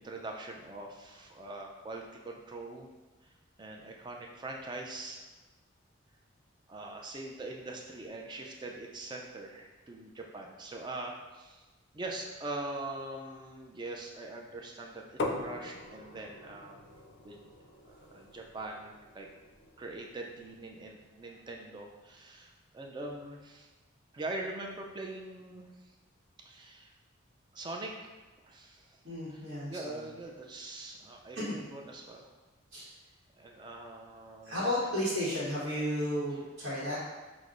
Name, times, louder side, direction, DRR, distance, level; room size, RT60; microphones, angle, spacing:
voice 1, 0.0-2.9 3.6-5.3 6.7-11.6 11.9-17.5 17.9-19.3 19.8-23.7 24.1-25.7 26.4-26.9 27.5-27.9 28.4-29.0 29.3-32.3 33.4-34.7 36.9-37.0, right 2 dB, 20° right, 1 dB, 0.3 m, -43 dB
sound 1, 15.2-20.8, left 2 dB, 60° left, 0.4 m, -42 dB
voice 2, 29.0-29.9 31.3-31.6 32.7-32.8 34.4-37.0, left 1 dB, 55° right, -11 dB, 1.1 m, -33 dB
6.0 x 2.0 x 2.5 m, 1.2 s
head